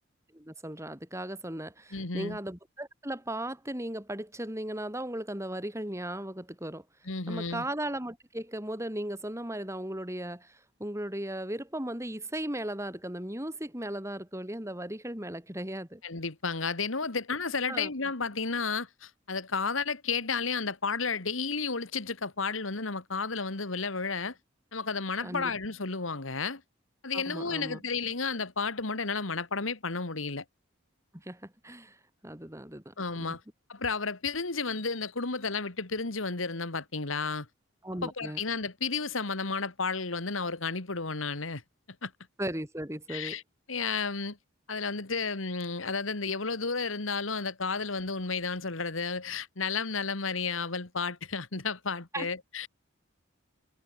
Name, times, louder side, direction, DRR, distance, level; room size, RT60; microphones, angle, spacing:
voice 1, 0.3-6.8 7.3-16.0 17.7-17.9 25.2-25.5 27.1-27.8 31.1-32.0 32.2-33.4 37.8-38.4 42.4-43.4 52.1-52.3, right 1 dB, 15° right, 4.7 m, -37 dB
voice 2, 1.9-2.4 7.1-7.7 16.0-24.4 24.7-26.6 27.0-30.4 33.0-33.4 33.7-37.5 38.0-41.6 42.0-42.1 43.1-43.4 43.7-44.4 44.7-52.7, left 4 dB, 85° left, 2.1 m, -32 dB
head